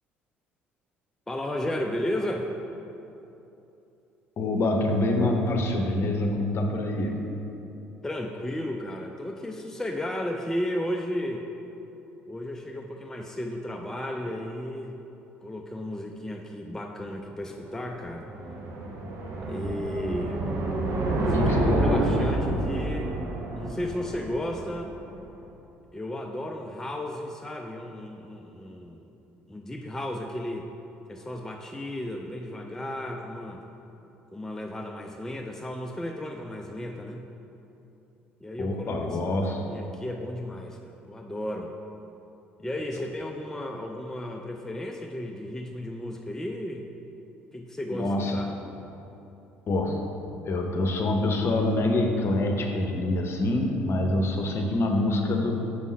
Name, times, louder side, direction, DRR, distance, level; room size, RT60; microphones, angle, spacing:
voice 1, 1.3-2.5 8.0-11.5 12.3-15.0 15.4-18.3 19.5-20.4 21.1-23.1 23.6-24.9 25.9-29.1 29.5-30.7 31.1-33.6 34.3-37.3 38.4-39.2 39.7-41.7 42.6-46.9 47.5-48.5, left 1 dB, 5° left, 2 dB, 0.4 m, -34 dB
voice 2, 4.4-7.1 21.3-22.1 38.6-39.6 47.9-48.4 49.7-50.1 50.4-55.5, left 2 dB, 40° left, 3 dB, 0.7 m, -26 dB
sound 1, 17.7-25.0, right 1 dB, 50° right, 0.7 m, -28 dB
6.2 x 5.3 x 3.1 m, 2.9 s
figure-of-eight pair, 55°, 6 cm